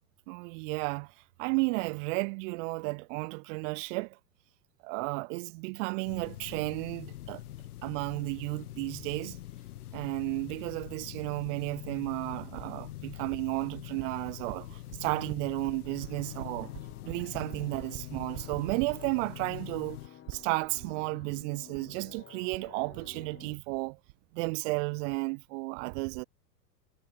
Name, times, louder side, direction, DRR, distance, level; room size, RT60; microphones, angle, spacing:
voice 1, 0.3-1.1 1.4-4.2 4.8-7.4 7.8-9.4 9.9-16.7 17.0-20.0 20.3-24.0 24.3-26.2, right 30 dB, 50° right, 2.1 m, -33 dB
sound 1, 6.1-20.1, left 14 dB, 65° left, 2.7 m, -44 dB
sound 2, 15.9-23.6, left 10 dB, 25° left, 3.6 m, -52 dB
figure-of-eight pair, 95°, 48 cm